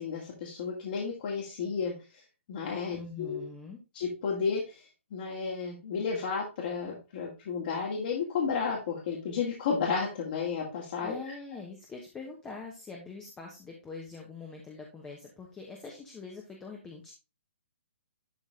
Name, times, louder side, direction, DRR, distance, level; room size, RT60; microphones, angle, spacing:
voice 1, 0.0-2.2 2.5-3.4 3.9-11.2, left 5 dB, 45° left, -3 dB, 2.4 m, -32 dB
voice 2, 2.9-3.8 11.0-17.1, left 4 dB, 10° left, 0 dB, 1.2 m, -44 dB
11.5 x 4.0 x 3.8 m, 0.29 s
hypercardioid pair, 160°, 7 cm